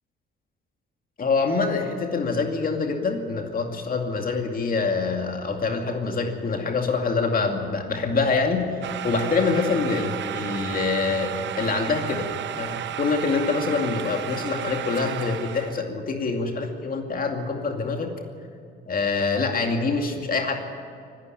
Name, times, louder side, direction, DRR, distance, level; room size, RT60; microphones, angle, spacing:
voice 1, 1.2-8.8 9.0-12.3 12.6-18.1 18.9-20.5, left 4 dB, 45° left, 3 dB, 2.4 m, -25 dB
sound 1, 8.8-15.8, right 12 dB, 65° right, 0.8 m, -33 dB
24.5 x 12.0 x 9.1 m, 2.4 s
cardioid pair, 90°, 20 cm